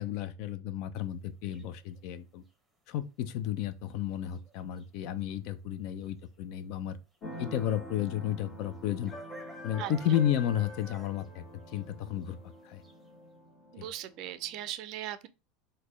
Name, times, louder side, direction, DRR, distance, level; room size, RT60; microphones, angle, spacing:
voice 1, 0.0-2.4 2.9-7.0 7.4-9.1 9.6-11.4 11.7-12.4 12.6-12.8 13.8-13.9, left 11 dB, 60° left, 0.4 m, -32 dB
sound 1, 1.5-2.0 3.8-4.2 4.4-4.5 4.8-5.3 6.1-6.2 6.4-6.5 8.0-8.1 9.0-11.3 11.7-11.8 12.3-12.4 12.8-12.9, left 1 dB, 5° right, 0.8 m, -51 dB
Keyboard (musical), 7.2-14.7, equal, 25° left, 1.5 m, -46 dB
voice 2, 13.7-15.3, right 12 dB, 50° right, 0.4 m, -38 dB
4.0 x 2.2 x 3.1 m
supercardioid pair, 135°, 0 cm